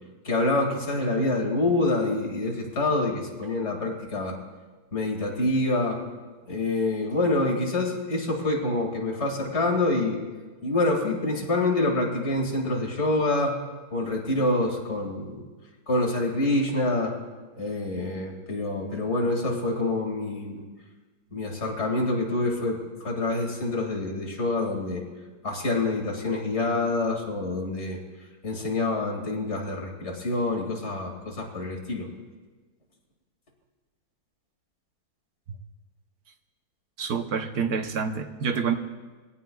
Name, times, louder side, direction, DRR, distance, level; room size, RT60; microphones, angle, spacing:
voice 1, 0.2-4.4 4.9-6.0 6.5-10.2 10.6-13.6 13.9-15.4 15.9-17.1 17.6-20.6 21.3-25.0 25.4-28.0 28.4-32.1, left 2 dB, 35° left, 0 dB, 2.4 m, -26 dB
voice 2, 37.0-38.7, right 6 dB, 60° right, 7 dB, 1.2 m, -27 dB
22.0 x 17.0 x 2.3 m, 1.3 s
omnidirectional pair, 2.2 m